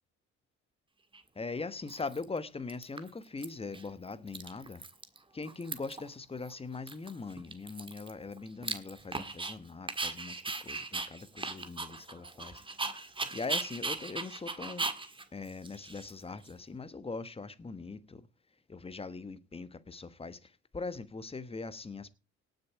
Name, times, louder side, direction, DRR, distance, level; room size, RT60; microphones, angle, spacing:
Dog, 1.1-1.2 1.9-2.4 2.7-3.4 3.7-5.2 5.4-6.1 6.4-6.5 6.9-9.5 9.9-16.5, right 3 dB, 15° right, 1.7 m, -38 dB
voice 1, 1.3-4.8 5.3-12.6 13.3-14.9 15.3-18.3 18.7-22.1, left 4 dB, 20° left, 1.2 m, -41 dB
18.0 x 6.8 x 4.7 m
cardioid pair, 95°, 30 cm